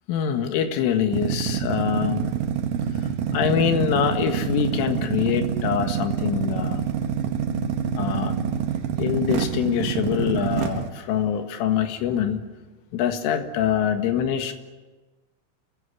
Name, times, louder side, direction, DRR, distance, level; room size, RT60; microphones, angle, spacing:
voice 1, 0.1-2.3 3.3-6.8 8.0-8.3 9.0-12.4 12.9-14.5, left 8 dB, 80° left, 6 dB, 4.2 m, -24 dB
sound 1, 1.1-10.9, right 8 dB, 85° right, 1.9 m, -26 dB
29.0 x 16.0 x 9.8 m, 1.2 s
omnidirectional pair, 5.8 m